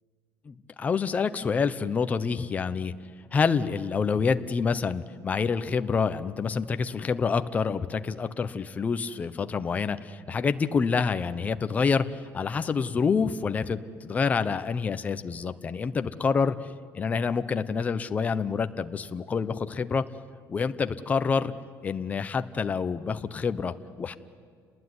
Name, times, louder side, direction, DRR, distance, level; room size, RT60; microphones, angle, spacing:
voice 1, 0.5-2.9 3.3-16.6 16.9-20.0 20.5-21.5 21.8-24.1, left 5 dB, 20° left, 10 dB, 0.8 m, -27 dB
30.0 x 20.0 x 9.7 m, 2.1 s
cardioid pair, 165°, 7 cm